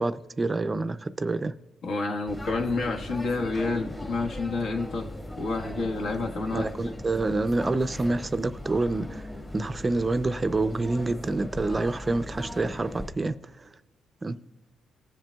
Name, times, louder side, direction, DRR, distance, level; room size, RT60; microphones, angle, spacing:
voice 1, 0.0-1.5 6.5-9.3 9.5-13.4 14.2-14.4, right 2 dB, 25° right, 0.4 m, -27 dB
voice 2, 1.8-5.1 5.4-7.0, left 3 dB, 70° left, 1.3 m, -29 dB
sound 1, 2.3-13.1, left 1 dB, 20° left, 1.6 m, -39 dB
19.5 x 7.4 x 2.3 m
cardioid pair, 90°, 0 cm